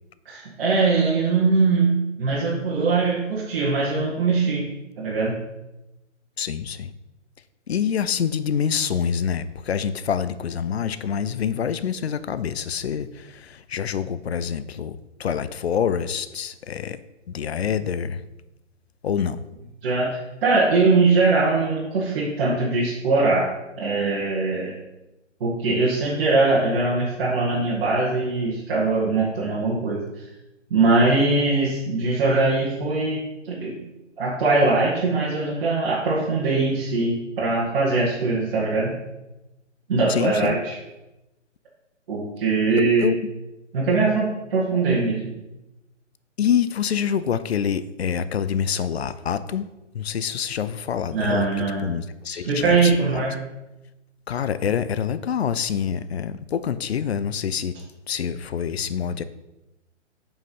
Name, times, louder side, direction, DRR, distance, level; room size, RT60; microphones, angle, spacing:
voice 1, 0.3-4.7 5.0-5.3 19.8-20.1 20.4-23.5 23.8-24.7 25.4-30.2 30.7-33.2 33.4-33.8 34.2-38.9 39.9-40.8 42.1-43.1 43.7-45.3 51.1-51.9 52.3-53.4, right 3 dB, 45° right, -6 dB, 2.0 m, -21 dB
voice 2, 6.4-6.9 7.7-17.0 17.3-18.2 19.0-19.4 40.1-40.6 42.8-43.2 46.4-49.7 49.9-51.5 51.8-53.3 54.3-57.8 58.1-59.2, left 8 dB, 55° left, 14 dB, 0.6 m, -26 dB
7.3 x 5.4 x 5.4 m, 0.98 s
figure-of-eight pair, 135°, 37 cm